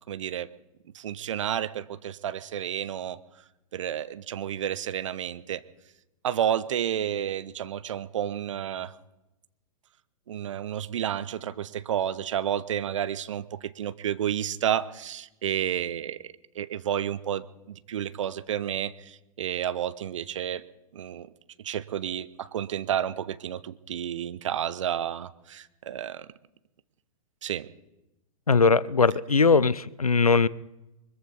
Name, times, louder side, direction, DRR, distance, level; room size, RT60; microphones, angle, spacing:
voice 1, 0.1-0.5 0.9-3.2 3.7-5.6 6.2-8.9 10.3-20.6 20.9-21.3 21.6-26.3 27.4-27.7, right 10 dB, 60° right, 16 dB, 0.9 m, -31 dB
voice 2, 28.5-30.5, left 4 dB, 85° left, 21 dB, 0.5 m, -20 dB
23.0 x 14.5 x 4.1 m, 0.95 s
figure-of-eight pair, 105°, 18 cm